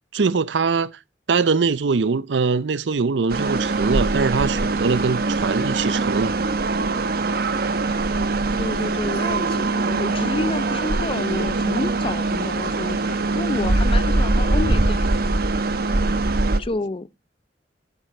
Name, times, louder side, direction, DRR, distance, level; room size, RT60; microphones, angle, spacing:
voice 1, 0.1-0.9 1.3-6.3, right 4 dB, 85° right, 0.6 m, -22 dB
sound 1, 3.3-16.6, right 2 dB, 60° right, 1.1 m, -22 dB
voice 2, 8.6-15.3 16.6-17.1, left 2 dB, 30° left, 0.6 m, -29 dB
9.7 x 9.1 x 6.6 m
head